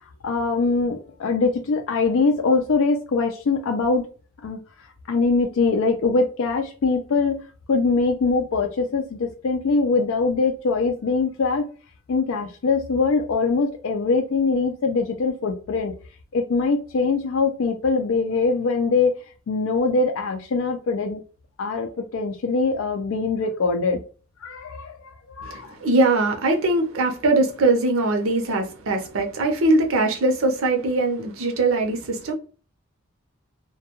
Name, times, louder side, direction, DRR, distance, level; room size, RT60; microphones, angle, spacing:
voice 1, 0.2-4.1 4.4-4.6 5.1-11.7 12.1-16.0 16.3-19.2 19.5-21.2 21.6-24.0 24.4-25.7, left 4 dB, 75° left, 0.4 m, -22 dB
voice 2, 25.4-32.3, right 2 dB, 80° right, 0.6 m, -21 dB
2.2 x 2.2 x 2.9 m
head